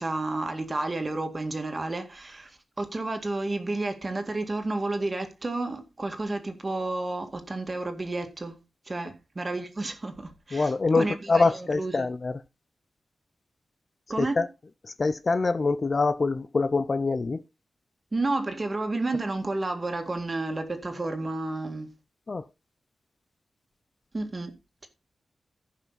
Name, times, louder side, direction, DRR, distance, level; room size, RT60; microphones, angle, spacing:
voice 1, 0.0-8.6 8.9-12.1 14.1-14.5 18.1-21.9 24.1-24.5, right 2 dB, 30° right, 2.0 m, -31 dB
voice 2, 10.5-12.4 14.2-14.5 14.8-17.4 22.3-22.5, left 3 dB, 40° left, 0.5 m, -25 dB
15.0 x 5.7 x 4.0 m
wide cardioid pair, 125°, 0 cm